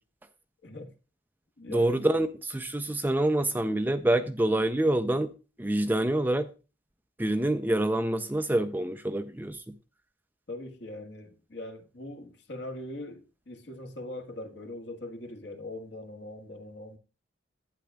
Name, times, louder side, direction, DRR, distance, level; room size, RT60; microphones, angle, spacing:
voice 1, 0.6-0.9 1.6-2.0 10.5-17.0, left 1 dB, 60° left, 1.5 m, -41 dB
voice 2, 1.7-5.3 5.6-6.5 7.2-9.7, right 1 dB, 10° right, 0.5 m, -26 dB
12.0 x 9.0 x 2.2 m
head